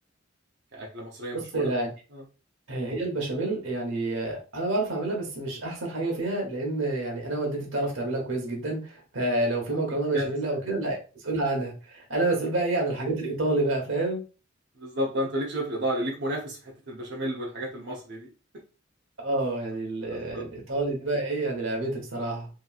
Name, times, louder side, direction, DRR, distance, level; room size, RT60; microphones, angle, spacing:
voice 1, 0.7-1.7 2.1-2.2 10.1-10.3 12.2-12.4 14.8-18.3 20.1-20.5, equal, 65° right, -3 dB, 0.7 m, -32 dB
voice 2, 1.5-1.9 2.7-11.0 11.2-14.2 19.2-22.5, right 2 dB, 90° right, 1 dB, 1.0 m, -28 dB
2.9 x 2.8 x 2.3 m, 0.34 s
head